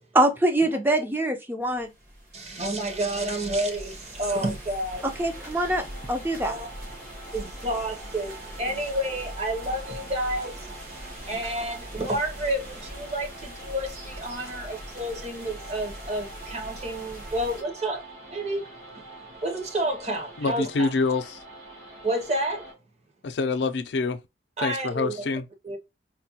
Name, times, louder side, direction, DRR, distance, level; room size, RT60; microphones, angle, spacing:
voice 1, 0.1-1.9 5.2-6.5, right 1 dB, 10° right, 0.4 m, -24 dB
sound 1, 1.6-17.6, equal, 55° right, 1.3 m, -42 dB
voice 2, 2.3-5.1 6.4-6.7 7.3-18.0 18.3-18.7 18.9-19.0 19.4-20.9 22.0-22.7 24.6-25.2 25.6-25.8, right 1 dB, 40° right, 0.9 m, -30 dB
sound 2, 4.9-22.7, right 2 dB, 80° right, 1.2 m, -45 dB
voice 3, 20.4-21.2 23.2-24.2 24.6-25.5, left 4 dB, 80° left, 0.4 m, -26 dB
4.1 x 2.2 x 2.7 m
head